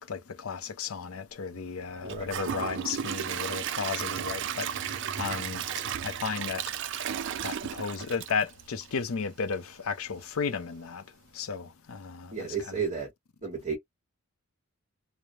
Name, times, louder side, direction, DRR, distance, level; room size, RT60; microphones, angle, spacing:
voice 1, 0.1-5.6 6.0-6.6 7.4-11.0 11.3-12.4, left 5 dB, 70° left, 0.5 m, -34 dB
Gurgling / Toilet flush / Trickle dribble, 2.1-9.1 9.5-9.6 10.1-10.2, right 9 dB, 55° right, 0.4 m, -34 dB
voice 2, 12.3-13.1 13.4-13.8, right 5 dB, 30° right, 1.0 m, -32 dB
3.1 x 2.0 x 2.3 m
head